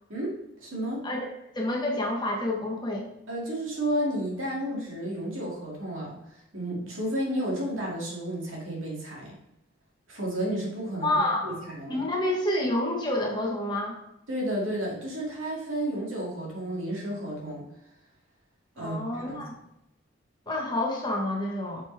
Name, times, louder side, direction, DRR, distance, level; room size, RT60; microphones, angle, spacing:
voice 1, 0.1-1.0 3.3-9.4 10.1-12.1 14.3-17.6 18.8-19.4, right 1 dB, 75° right, -3 dB, 2.4 m, -32 dB
voice 2, 1.5-3.1 11.0-11.6 11.9-14.0 18.8-19.5 20.5-21.8, left 1 dB, 20° left, -1 dB, 1.1 m, -28 dB
6.3 x 5.2 x 3.4 m, 0.84 s
head